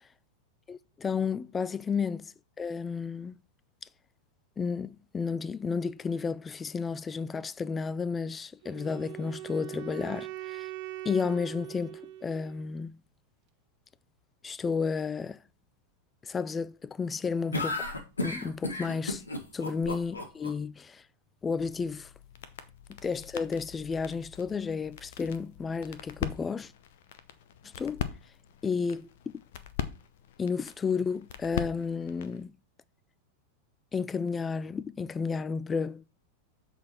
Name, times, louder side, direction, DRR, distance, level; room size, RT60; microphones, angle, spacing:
voice 1, 0.7-3.4 4.6-10.7 11.0-13.0 14.4-15.4 16.2-17.9 18.2-19.2 19.5-21.0 21.4-22.1 23.0-26.7 27.8-28.0 28.6-29.1 30.4-32.5 33.9-36.0, left 5 dB, 15° left, 0.3 m, -32 dB
Wind instrument woodwind instrument, 8.6-12.7, right 15 dB, 45° right, 0.6 m, -41 dB
sound 1, 17.5-20.5, left 2 dB, 75° left, 1.3 m, -33 dB
sound 2, 21.6-32.4, left 10 dB, 55° left, 0.7 m, -41 dB
7.1 x 4.2 x 4.2 m
figure-of-eight pair, 90°, 0 cm